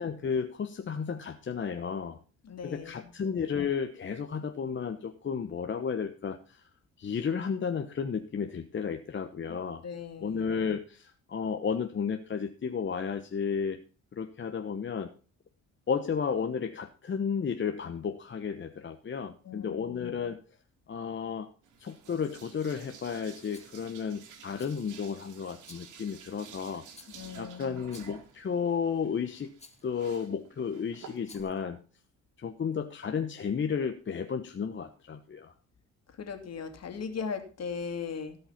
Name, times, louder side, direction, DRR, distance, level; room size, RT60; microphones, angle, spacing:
voice 1, 0.0-2.2 2.6-6.7 7.0-9.8 10.2-13.8 14.1-15.1 15.9-20.4 20.9-21.5 21.8-26.8 27.4-29.5 29.8-31.8 32.4-35.5, left 6 dB, 40° left, 6 dB, 1.0 m, -33 dB
voice 2, 2.4-3.1 9.5-10.4 19.4-20.2 27.1-27.9 36.1-38.4, left 6 dB, 55° left, 7 dB, 2.6 m, -39 dB
sound 1, 21.6-31.4, right 7 dB, 80° right, 2.2 m, -52 dB
Rattle, 23.5-23.8 24.6-25.0 25.6-26.0 26.9-27.4 27.9-28.3 29.6-29.9 31.2-31.6, left 4 dB, 20° left, 1.6 m, -55 dB
16.5 x 5.6 x 5.8 m, 0.37 s
cardioid pair, 90°, 30 cm